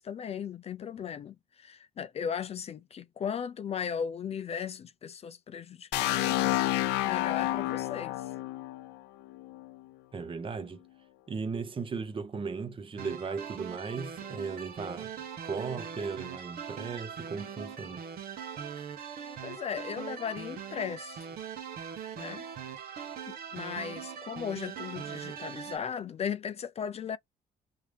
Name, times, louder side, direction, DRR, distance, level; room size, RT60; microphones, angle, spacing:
voice 1, 0.0-6.6 7.0-8.3 19.4-21.3 22.2-22.4 23.3-27.2, left 7 dB, 40° left, 0.4 m, -37 dB
sound 1, 5.9-9.7, left 16 dB, 90° left, 0.5 m, -30 dB
voice 2, 10.1-10.8 11.3-15.1 15.4-18.0, right 5 dB, 30° right, 0.8 m, -36 dB
sound 2, 13.0-25.8, right 7 dB, 60° right, 0.9 m, -41 dB
3.6 x 2.8 x 3.3 m
cardioid pair, 110°, 17 cm